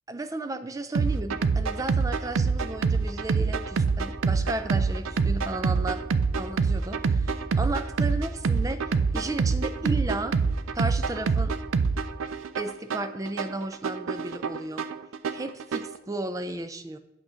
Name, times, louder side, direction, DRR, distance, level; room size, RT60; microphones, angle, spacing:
voice 1, 0.1-6.0 6.4-10.4 10.7-11.5 12.6-14.9 15.3-17.0, right 2 dB, 15° right, 10 dB, 0.4 m, -34 dB
sound 1, 0.9-16.0, right 5 dB, 85° right, 0.4 m, -26 dB
8.6 x 3.8 x 6.2 m, 0.93 s
head